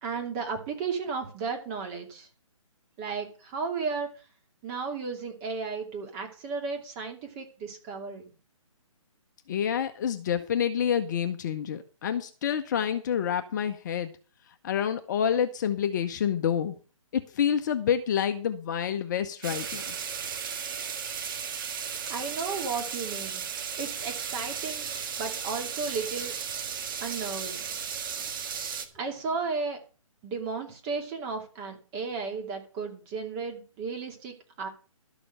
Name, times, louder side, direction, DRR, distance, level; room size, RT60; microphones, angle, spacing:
voice 1, 0.0-2.3 3.0-4.2 4.6-8.3 22.1-23.5 23.8-24.9 25.2-26.3 27.0-27.7 28.9-29.8 30.2-34.7, right 4 dB, 25° right, 2.6 m, -34 dB
voice 2, 9.5-14.2 14.6-16.8 17.1-19.9, left 8 dB, 35° left, 0.8 m, -28 dB
sound 1, 19.4-28.9, right 7 dB, 40° right, 1.6 m, -35 dB
12.5 x 7.0 x 6.4 m
hypercardioid pair, 150°, 18 cm